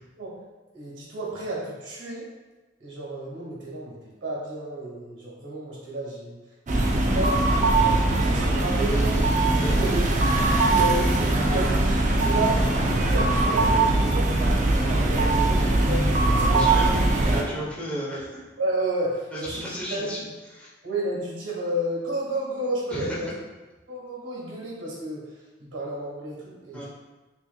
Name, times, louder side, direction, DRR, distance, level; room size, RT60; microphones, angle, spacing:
voice 1, 0.7-2.3 2.8-6.4 6.8-10.0 10.7-14.4 14.8-16.5 18.6-19.6 19.9-20.1 20.8-23.3 23.9-25.2 25.6-26.9, right 1 dB, 85° right, -5 dB, 1.5 m, -32 dB
sound 1, 6.7-17.4, right 2 dB, 45° right, 0.5 m, -21 dB
voice 2, 9.5-9.9 16.5-18.4 19.3-20.2 20.5-20.7 22.9-23.3 26.7-26.9, equal, 5° left, -7 dB, 1.0 m, -34 dB
5.4 x 2.8 x 2.4 m, 1.2 s
head